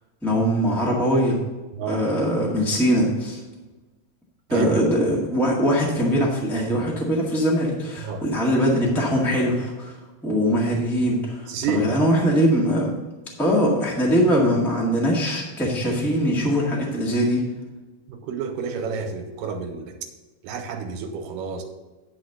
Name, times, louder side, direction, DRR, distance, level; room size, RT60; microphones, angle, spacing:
voice 1, 0.2-1.4 1.9-3.4 4.5-12.9 13.4-17.4, equal, ahead, -3 dB, 0.4 m, -22 dB
voice 2, 1.7-2.0 4.5-4.7 8.0-8.2 11.5-11.9 18.1-20.0 20.4-21.6, right 5 dB, 85° right, 5 dB, 2.5 m, -29 dB
9.7 x 4.3 x 6.5 m, 1.2 s
omnidirectional pair, 3.8 m